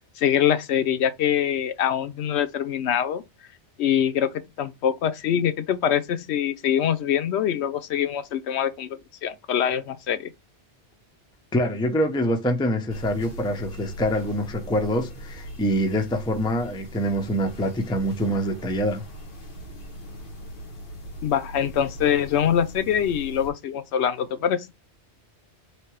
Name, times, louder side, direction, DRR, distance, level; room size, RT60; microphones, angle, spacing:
voice 1, 0.2-3.2 3.8-4.3 4.6-8.9 9.2-10.3 21.2-24.7, left 9 dB, 75° left, 0.9 m, -24 dB
voice 2, 11.5-19.0, equal, 5° left, 0.4 m, -25 dB
sound 1, 12.9-23.5, equal, 50° left, 1.1 m, -40 dB
3.3 x 2.7 x 4.5 m
omnidirectional pair, 1.2 m